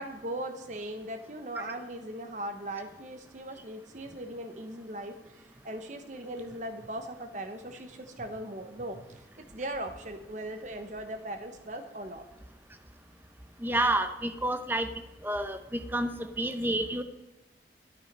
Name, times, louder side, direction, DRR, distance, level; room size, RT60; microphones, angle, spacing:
voice 1, 0.0-9.2 9.5-12.2, right 1 dB, 45° right, 6 dB, 1.0 m, -39 dB
voice 2, 13.6-14.9 15.2-15.6 15.9-16.1 16.4-17.0, right 1 dB, 10° right, 8 dB, 0.7 m, -28 dB
12.0 x 9.0 x 5.4 m, 1.0 s
head